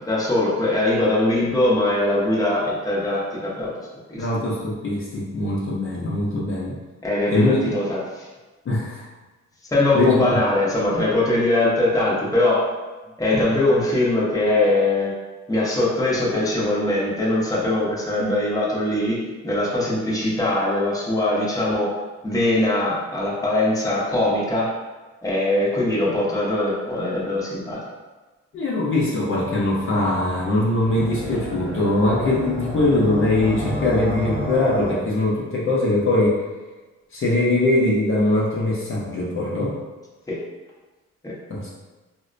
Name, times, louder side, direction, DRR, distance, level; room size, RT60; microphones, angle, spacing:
voice 1, 0.1-3.7 4.1-4.2 7.0-8.3 9.7-12.7 13.2-15.1 15.5-21.9 22.2-24.7 25.2-27.8 40.3-40.4 41.2-41.3, left 1 dB, 10° left, -6 dB, 0.8 m, -21 dB
voice 2, 4.2-6.7 7.3-7.6 8.7-9.1 9.9-10.4 13.3-13.4 28.5-36.4 37.1-39.7 41.5-41.7, left 2 dB, 45° left, -6 dB, 0.6 m, -21 dB
sound 1, 30.8-34.9, equal, 20° right, 1.1 m, -30 dB
4.0 x 2.1 x 2.5 m, 1.2 s
cardioid pair, 115°, 29 cm